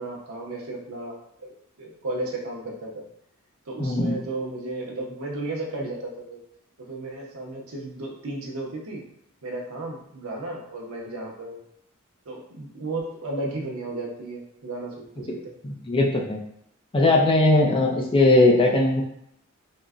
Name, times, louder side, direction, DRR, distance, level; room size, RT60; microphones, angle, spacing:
voice 1, 0.0-1.5 1.8-3.0 3.7-6.4 6.9-9.0 9.4-11.6 12.3-15.5, right 2 dB, 80° right, -1 dB, 0.7 m, -34 dB
voice 2, 3.8-4.1 15.6-16.4 16.9-19.0, left 2 dB, 25° left, 0 dB, 0.4 m, -19 dB
3.7 x 2.1 x 2.4 m, 0.75 s
head